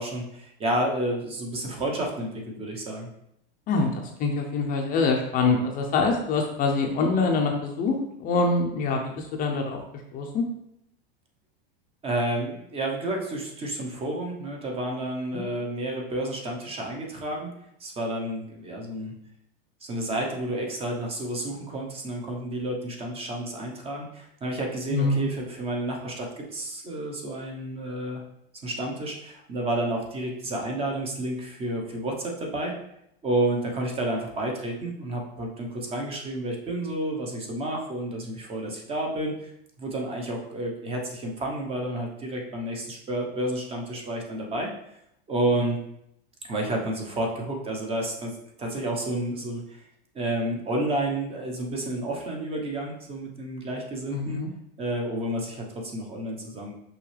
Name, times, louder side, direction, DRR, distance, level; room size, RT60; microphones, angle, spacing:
voice 1, 0.0-3.1 12.0-17.5 17.8-19.1 19.8-28.2 28.6-32.7 33.2-39.5 39.8-44.7 45.3-45.8 46.5-49.8 50.1-54.4 54.8-56.7, right 1 dB, 20° right, 1 dB, 1.0 m, -30 dB
voice 2, 3.7-9.8 10.1-10.4 24.9-25.3 54.1-54.5, left 3 dB, 30° left, 2 dB, 0.7 m, -25 dB
6.0 x 5.4 x 3.4 m, 0.79 s
supercardioid pair, 150°, 30 cm